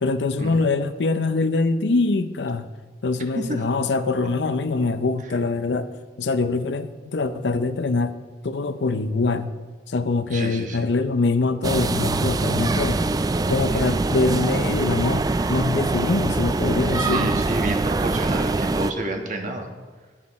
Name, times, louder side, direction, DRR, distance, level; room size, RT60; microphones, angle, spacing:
voice 1, 0.0-2.7 3.0-5.9 6.2-8.1 8.4-9.5 9.9-13.1 13.5-17.3, left 3 dB, 75° left, 11 dB, 0.6 m, -24 dB
voice 2, 10.3-10.8 13.7-14.0 16.9-19.7, right 1 dB, 45° right, 3 dB, 1.4 m, -30 dB
sound 1, 11.6-18.9, right 3 dB, 20° right, 0.3 m, -23 dB
11.0 x 9.8 x 4.2 m, 1.4 s
head